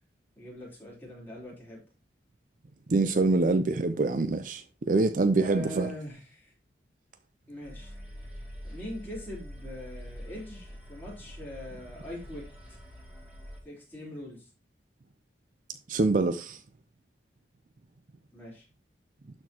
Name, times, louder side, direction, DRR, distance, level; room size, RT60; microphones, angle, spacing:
voice 1, 0.4-1.8 5.3-6.5 7.5-8.0 8.6-12.8 13.6-14.5 18.3-18.7, equal, 10° left, 3.6 m, -42 dB
voice 2, 2.9-5.9 15.9-16.6, right 3 dB, 45° right, 0.5 m, -25 dB
sound 1, 7.6-13.6, equal, 5° right, 2.2 m, -45 dB
12.0 x 4.5 x 2.8 m
head